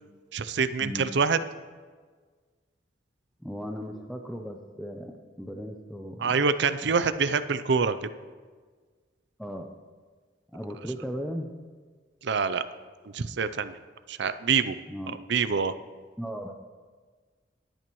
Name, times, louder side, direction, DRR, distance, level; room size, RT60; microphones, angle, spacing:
voice 1, 0.3-1.4 6.2-8.1 12.2-12.6 13.1-13.8 14.1-14.8 15.1-15.7, right 5 dB, 65° right, 13 dB, 0.5 m, -26 dB
voice 2, 3.4-6.4 6.8-6.9 9.4-9.7 10.5-11.5 14.9-15.2 16.2-16.5, equal, ahead, 2 dB, 0.6 m, -37 dB
26.0 x 8.9 x 3.1 m, 1.5 s
head